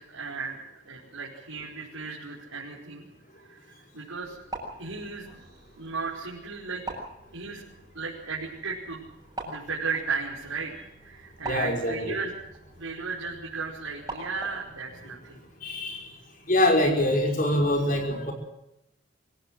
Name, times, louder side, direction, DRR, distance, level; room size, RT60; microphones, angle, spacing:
voice 1, 0.0-3.1 3.5-4.4 4.8-5.3 5.8-6.8 7.3-7.6 7.9-9.1 9.4-12.3 12.8-15.4, right 4 dB, 85° right, -4 dB, 5.2 m, -35 dB
sound 1, 4.2-14.8, right 2 dB, 20° right, 7.4 m, -44 dB
voice 2, 11.4-12.2 15.6-16.1 16.5-18.3, left 1 dB, 40° left, 3 dB, 5.7 m, -24 dB
25.0 x 16.5 x 7.8 m, 0.84 s
head